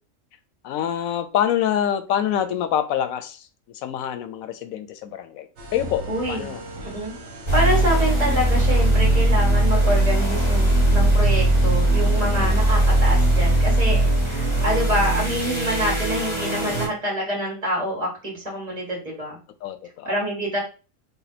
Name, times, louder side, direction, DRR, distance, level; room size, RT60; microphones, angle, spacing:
voice 1, 0.6-6.6 12.1-12.6 19.6-20.1, left 10 dB, 90° left, 11 dB, 1.0 m, -26 dB
sound 1, 5.6-12.4, right 2 dB, 70° right, 1.4 m, -35 dB
voice 2, 6.1-7.2 7.5-19.4 20.0-20.6, equal, 30° right, -3 dB, 2.2 m, -26 dB
sound 2, 7.5-16.9, right 1 dB, 20° left, 1.5 m, -19 dB
3.5 x 2.9 x 4.1 m, 0.34 s
omnidirectional pair, 1.4 m